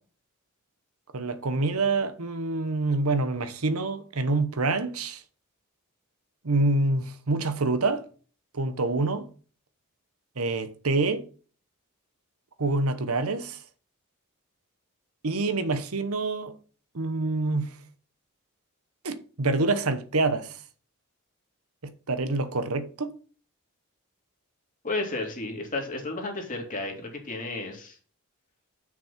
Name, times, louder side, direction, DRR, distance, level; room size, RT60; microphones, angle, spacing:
voice 1, 1.1-5.2 6.4-8.1 8.5-9.3 10.4-11.2 12.6-13.6 15.2-16.5 16.9-17.7 19.0-20.6 22.1-23.1, right 3 dB, 75° right, 1.0 m, -26 dB
voice 2, 24.8-28.0, left 2 dB, 35° left, 2.6 m, -32 dB
7.3 x 6.2 x 5.9 m
head